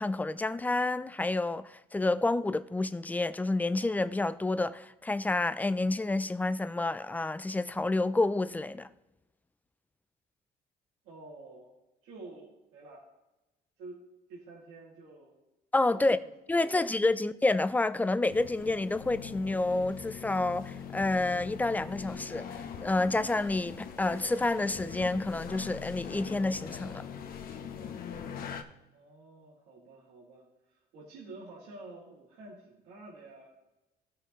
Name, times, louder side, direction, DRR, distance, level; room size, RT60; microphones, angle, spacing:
voice 1, 0.0-8.9 15.7-16.2 16.5-27.0, left 2 dB, 10° left, 0.4 m, -29 dB
voice 2, 11.0-11.7 12.0-13.0 13.8-15.4 15.9-16.2 16.5-16.8 28.9-33.5, right 2 dB, 85° right, 2.3 m, -49 dB
sound 1, 18.3-28.6, left 7 dB, 60° left, 1.0 m, -42 dB
15.5 x 6.5 x 3.1 m
cardioid pair, 110°, 17 cm